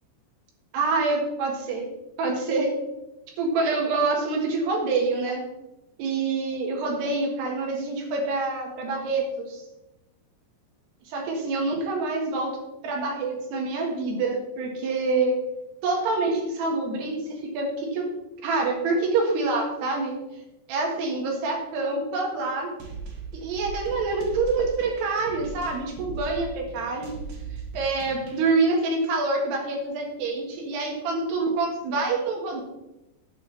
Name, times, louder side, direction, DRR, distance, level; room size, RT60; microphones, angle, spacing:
voice 1, 0.7-1.9 2.2-2.7 3.4-5.4 6.0-9.6 11.1-12.5 12.8-15.4 15.8-18.1 18.4-20.1 20.7-22.7 23.3-27.1 27.7-32.6, right 3 dB, 75° right, 0 dB, 3.8 m, -26 dB
sound 1, 22.8-28.4, right 5 dB, 55° right, 2.5 m, -39 dB
9.1 x 5.0 x 6.7 m, 0.95 s
omnidirectional pair, 4.8 m